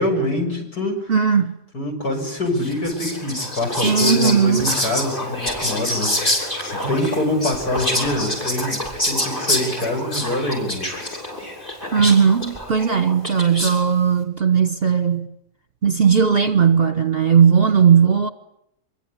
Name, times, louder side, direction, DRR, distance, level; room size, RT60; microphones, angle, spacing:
voice 1, 0.0-1.1 1.7-10.9 11.4-11.5, left 1 dB, 65° left, 7.5 m, -25 dB
voice 2, 1.1-1.5 3.8-4.7 11.9-15.3 15.8-18.3, right 7 dB, 40° right, 1.3 m, -17 dB
Whispering, 2.5-13.9, left 1 dB, 30° left, 7.4 m, -26 dB
25.5 x 23.5 x 9.9 m
omnidirectional pair, 1.8 m